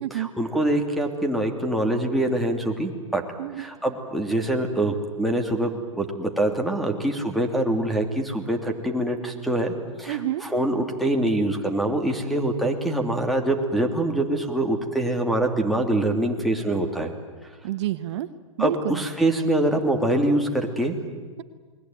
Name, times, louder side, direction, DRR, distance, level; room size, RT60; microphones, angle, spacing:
voice 1, 0.1-3.2 3.6-17.1 18.6-21.0, right 1 dB, ahead, 0 dB, 2.9 m, -24 dB
voice 2, 10.1-10.4 17.6-18.3 18.6-19.0, right 13 dB, 55° right, 12 dB, 1.1 m, -28 dB
29.0 x 21.0 x 9.3 m, 1.5 s
hypercardioid pair, 120°, 17 cm